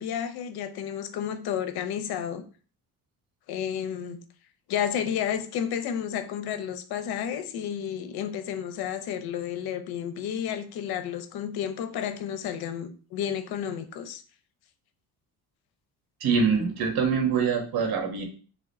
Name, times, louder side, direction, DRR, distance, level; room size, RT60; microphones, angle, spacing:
voice 1, 0.0-2.4 3.5-4.2 4.7-14.2, left 9 dB, 75° left, 0.7 m, -31 dB
voice 2, 16.2-18.2, right 5 dB, 75° right, 1.3 m, -24 dB
3.6 x 3.1 x 4.0 m
cardioid pair, 110°, 38 cm